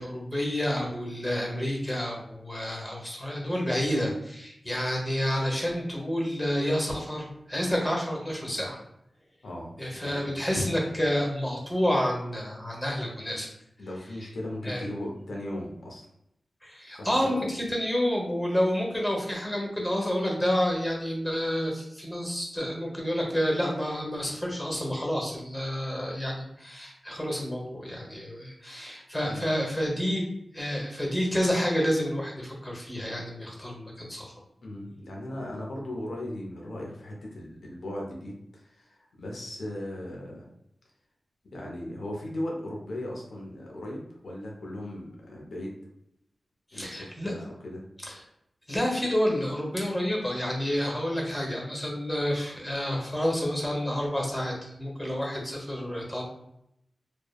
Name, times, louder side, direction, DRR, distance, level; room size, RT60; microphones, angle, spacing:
voice 1, 0.0-8.8 9.8-13.5 14.6-14.8 16.6-30.2 30.5-34.3 46.7-47.3 48.0-48.2 48.7-56.2, equal, 15° left, -1 dB, 0.8 m, -29 dB
voice 2, 9.4-10.3 13.8-16.1 16.9-17.4 29.2-29.4 34.6-40.5 41.5-45.8 46.7-47.8, left 1 dB, 85° left, -1 dB, 0.6 m, -37 dB
3.1 x 2.0 x 2.2 m, 0.78 s
wide cardioid pair, 75°, 0 cm